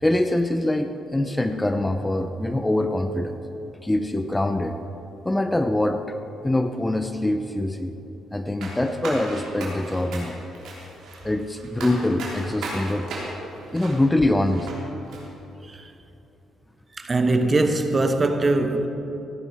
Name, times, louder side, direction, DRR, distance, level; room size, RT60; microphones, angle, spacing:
voice 1, 0.0-3.4 3.8-4.8 5.2-6.2 6.4-7.9 8.3-10.4 11.2-13.1 13.7-14.7, left 1 dB, 10° left, 0.6 m, -24 dB
sound 1, 8.6-14.8 15.1-15.2, right 2 dB, 80° right, 3.4 m, -36 dB
voice 2, 17.0-18.9, right 2 dB, 30° right, 1.0 m, -21 dB
16.5 x 9.8 x 4.6 m
cardioid pair, 90°, 0 cm